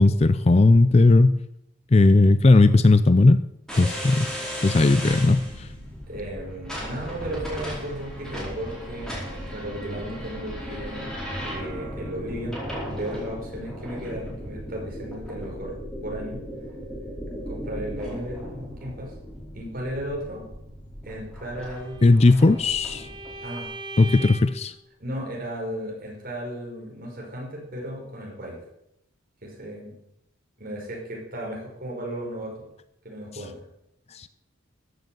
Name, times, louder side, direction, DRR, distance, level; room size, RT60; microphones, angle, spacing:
voice 1, 0.0-1.4 1.9-3.4 3.8-5.7 22.0-23.1 24.0-24.7 34.1-34.3, left 2 dB, 30° left, 13 dB, 0.4 m, -17 dB
sound 1, 3.7-23.4, equal, 5° left, 4.5 m, -36 dB
voice 2, 6.1-11.2 11.4-15.7 16.0-16.4 17.5-19.1 19.5-20.4 21.0-22.0 23.4-23.7 25.0-28.6 29.4-29.9 30.6-32.6 33.0-33.6, equal, 45° right, -2 dB, 5.3 m, -35 dB
Bowed string instrument, 21.6-24.7, right 2 dB, 20° right, 1.5 m, -40 dB
14.0 x 7.9 x 7.8 m, 0.79 s
head